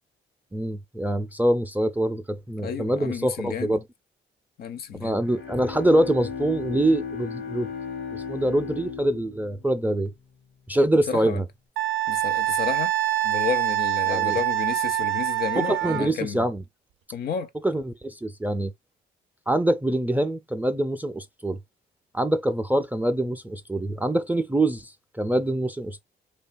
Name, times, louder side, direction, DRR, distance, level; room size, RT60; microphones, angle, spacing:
voice 1, 0.5-3.8 5.0-7.7 8.1-10.1 10.7-11.4 14.1-14.4 15.6-16.6 17.6-18.7 19.5-21.6 22.1-26.0, right 1 dB, 10° right, 0.3 m, -25 dB
voice 2, 2.6-3.8 4.6-5.2 11.1-11.4 12.1-12.9 13.2-16.5 17.1-17.5, left 7 dB, 50° left, 0.5 m, -31 dB
Bowed string instrument, 5.1-10.7, left 6 dB, 85° left, 1.0 m, -36 dB
Wind instrument woodwind instrument, 11.8-16.1, right 14 dB, 85° right, 0.4 m, -25 dB
2.8 x 2.2 x 2.5 m
cardioid pair, 90°, 20 cm